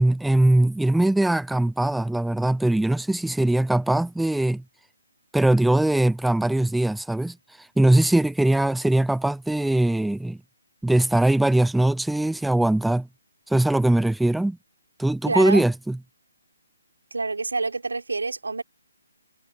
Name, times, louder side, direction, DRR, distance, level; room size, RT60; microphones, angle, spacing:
voice 1, 0.0-4.6 5.3-10.4 10.8-13.1 13.5-14.6 15.0-16.0, right 1 dB, ahead, 0.4 m, -21 dB
voice 2, 15.3-15.6 17.1-18.6, right 3 dB, 80° right, 3.4 m, -27 dB
figure-of-eight pair, 145°, 0 cm